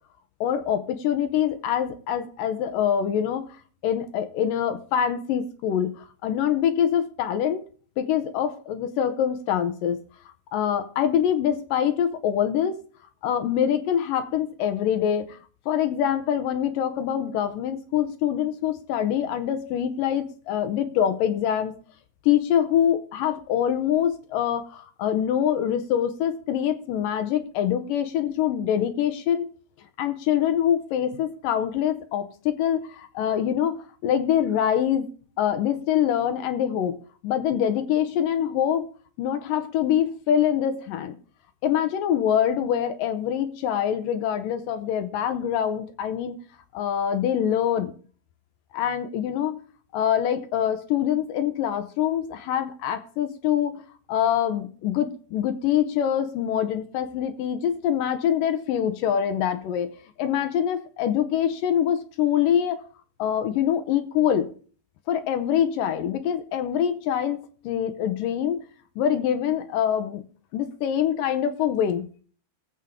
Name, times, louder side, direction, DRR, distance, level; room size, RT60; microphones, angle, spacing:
voice 1, 0.4-3.5 3.8-7.6 8.0-10.0 10.5-12.8 13.2-15.4 15.7-21.7 22.3-29.5 30.0-35.1 35.4-38.9 39.2-41.1 41.6-46.4 46.7-47.9 48.7-49.6 49.9-53.8 54.1-59.9 60.2-62.8 63.2-64.5 65.1-67.4 67.6-68.6 69.0-70.2 70.5-72.1, left 9 dB, 70° left, 2.2 m, -24 dB
20.0 x 7.3 x 3.6 m
omnidirectional pair, 4.5 m